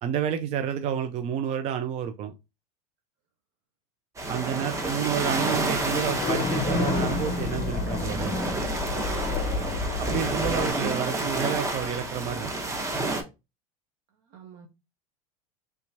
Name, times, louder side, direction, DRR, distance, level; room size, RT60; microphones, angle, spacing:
voice 1, 0.0-2.3 4.3-8.3 10.0-12.5, right 8 dB, 35° right, 0.3 m, -30 dB
sound 1, 4.2-13.2, right 2 dB, 15° right, 0.8 m, -30 dB
sound 2, 5.6-10.7, left 3 dB, 30° left, 0.7 m, -30 dB
voice 2, 14.1-14.7, right 5 dB, 60° right, 0.7 m, -47 dB
3.4 x 2.9 x 2.6 m
hypercardioid pair, 105°, 19 cm